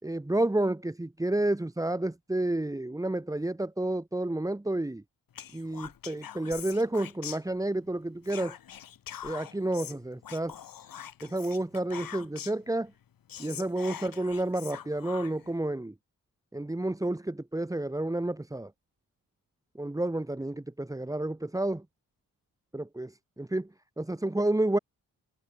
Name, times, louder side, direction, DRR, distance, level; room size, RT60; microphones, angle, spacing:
voice 1, 0.0-5.0 5.5-8.5 9.2-10.5 11.2-12.9 13.4-15.9 16.5-18.7 19.8-21.8 22.7-23.7 24.0-24.8, right 1 dB, 10° right, 3.4 m, -30 dB
Whispering, 5.3-7.9 8.2-12.7 13.0-13.1 13.3-15.5, left 9 dB, 70° left, 5.5 m, -44 dB
wide cardioid pair, 145°, 35 cm